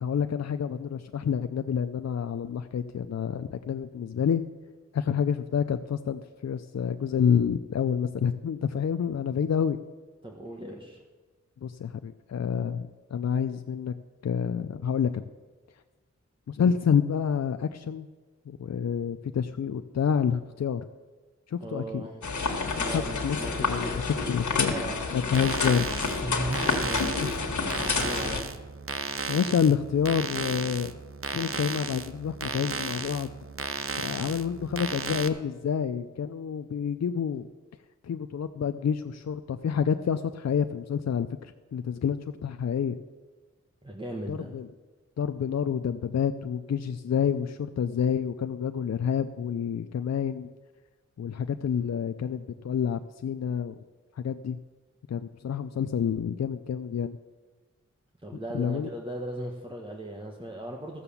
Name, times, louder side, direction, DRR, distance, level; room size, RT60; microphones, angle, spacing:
voice 1, 0.0-4.4 4.9-9.8 11.6-13.9 14.2-15.2 16.5-18.1 18.5-20.8 21.5-22.1 22.8-24.7 25.1-26.2 27.2-27.3 29.3-30.9 31.3-33.3 34.0-37.4 38.0-43.0 44.3-44.7 45.2-50.5 51.2-53.7 54.2-54.6 55.1-57.2 58.5-58.9, left 7 dB, 65° left, 8 dB, 0.5 m, -28 dB
voice 2, 10.2-11.0 21.6-22.3 22.7-24.4 24.7-25.0 26.2-28.5 43.8-44.6 58.2-61.0, right 1 dB, 15° right, -1 dB, 1.4 m, -37 dB
sound 1, 22.2-28.4, left 4 dB, 85° left, 1.5 m, -29 dB
sound 2, 25.3-35.3, right 4 dB, 50° right, 0.8 m, -35 dB
14.0 x 6.8 x 7.1 m, 1.3 s
cardioid pair, 50°, 29 cm